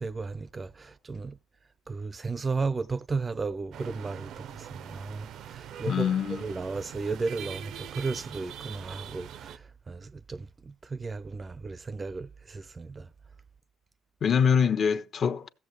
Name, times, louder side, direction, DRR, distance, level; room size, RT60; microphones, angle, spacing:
voice 1, 0.0-1.3 1.9-4.3 4.6-5.3 5.8-6.1 6.4-9.5 9.9-10.5 10.9-13.1, right 4 dB, 25° right, 0.6 m, -34 dB
sound 1, 3.7-9.6, right 9 dB, 70° right, 0.7 m, -43 dB
voice 2, 5.9-6.5 14.2-15.5, left 7 dB, 50° left, 1.2 m, -24 dB
16.0 x 7.2 x 3.1 m
cardioid pair, 100°, 0 cm